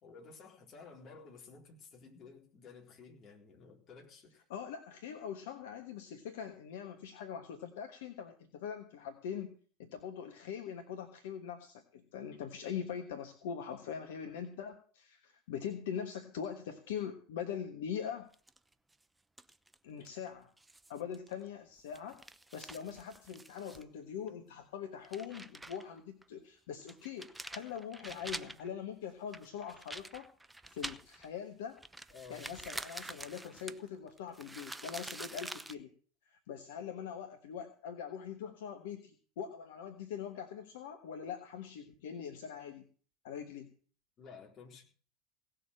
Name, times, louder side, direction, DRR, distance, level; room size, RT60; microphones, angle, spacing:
voice 1, 0.0-4.4 32.1-32.5 33.6-33.8 44.2-44.8, left 5 dB, 35° left, 1 dB, 4.0 m, -53 dB
voice 2, 4.5-18.3 19.8-20.5 20.9-22.2 22.5-30.3 30.7-31.8 32.3-35.9 36.2-42.9 43.2-43.7, left 8 dB, 60° left, 5 dB, 1.3 m, -42 dB
sound 1, 18.3-18.9 19.4-19.8 20.1-20.2 20.6-21.4 21.8-23.8 24.3-24.4 24.9-25.9 26.2-26.3 26.8-28.7 29.3-31.4 31.8-35.8, right 2 dB, 10° right, 0.7 m, -46 dB
17.5 x 6.9 x 7.5 m, 0.43 s
figure-of-eight pair, 75°, 0 cm